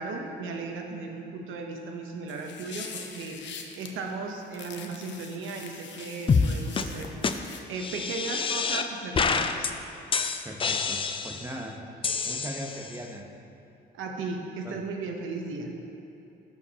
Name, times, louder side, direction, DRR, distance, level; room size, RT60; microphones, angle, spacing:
voice 1, 0.0-3.4 3.8-7.1 7.7-9.7 13.9-15.7, right 3 dB, 85° right, 3 dB, 0.9 m, -36 dB
sound 1, 2.3-3.9 4.5-7.6, left 6 dB, 65° left, 0.8 m, -43 dB
sound 2, 6.3-6.5 6.8-6.9 7.2-7.3 7.8-8.9 9.2-9.7 10.1-11.5 12.0-13.0, left 5 dB, 25° left, 0.4 m, -27 dB
voice 2, 10.4-11.8 12.2-13.3 14.6-14.8, equal, 15° right, 1 dB, 0.9 m, -39 dB
14.0 x 4.8 x 2.9 m, 2.8 s
cardioid pair, 90°, 20 cm